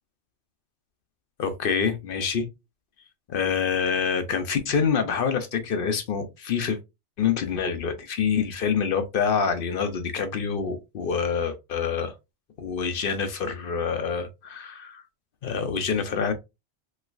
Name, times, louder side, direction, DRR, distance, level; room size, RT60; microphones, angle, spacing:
voice 1, 1.4-2.5 3.3-6.8 7.2-12.1 12.6-15.0 15.4-16.3, left 6 dB, 60° left, 0.7 m, -26 dB
3.1 x 3.1 x 2.3 m
omnidirectional pair, 1.2 m